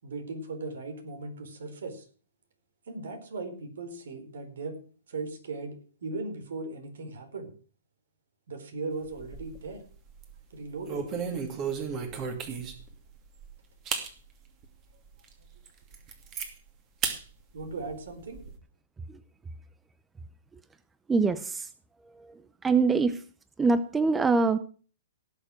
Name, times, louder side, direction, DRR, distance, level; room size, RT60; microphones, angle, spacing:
voice 1, 0.0-2.0 2.9-4.8 5.1-7.5 8.5-9.8 10.5-11.1 17.5-18.4, right 3 dB, 75° right, 6 dB, 4.3 m, -38 dB
sound 1, 9.0-9.7 10.1-10.3 10.8-12.9 13.4-13.5 13.9-14.1 14.6-14.7 15.2-15.3 15.7-16.5 17.0-17.2 17.6-18.5, right 6 dB, 30° right, 2.6 m, -34 dB
voice 2, 21.1-21.7 22.1-23.2 23.6-24.6, right 4 dB, 10° right, 14 dB, 0.7 m, -24 dB
18.0 x 6.7 x 6.4 m, 0.40 s
hypercardioid pair, 140°, 0 cm